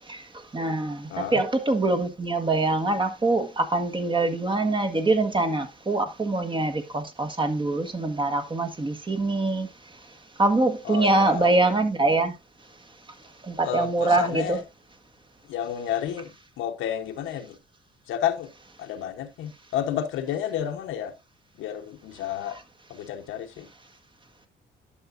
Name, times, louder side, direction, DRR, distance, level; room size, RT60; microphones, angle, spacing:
voice 1, 0.5-9.7 10.4-12.3 13.4-14.6, right 2 dB, 25° right, 1.5 m, -24 dB
voice 2, 1.1-1.4 10.8-11.6 13.6-14.6 15.5-17.6 18.1-18.5 18.8-21.1 21.5-22.6 22.9-23.7, left 10 dB, 90° left, 1.2 m, -31 dB
11.0 x 6.1 x 2.6 m
cardioid pair, 90°, 20 cm